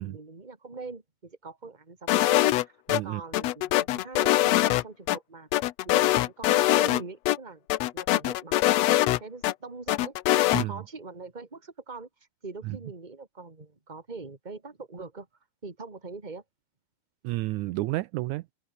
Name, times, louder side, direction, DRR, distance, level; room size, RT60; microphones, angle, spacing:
voice 1, 0.0-2.7 3.0-7.7 7.9-10.1 10.5-12.1 12.4-15.3 15.6-16.4, right 3 dB, 15° right, 2.5 m, -43 dB
sound 1, 2.1-3.0 3.3-5.2 5.5-7.0 7.3-7.4 7.7-9.5 9.9-10.6, left 15 dB, 80° left, 1.5 m, -23 dB
voice 2, 2.9-3.2 10.5-10.7 12.6-12.8 17.2-18.5, right 18 dB, 85° right, 1.8 m, -31 dB
open air
omnidirectional pair, 4.0 m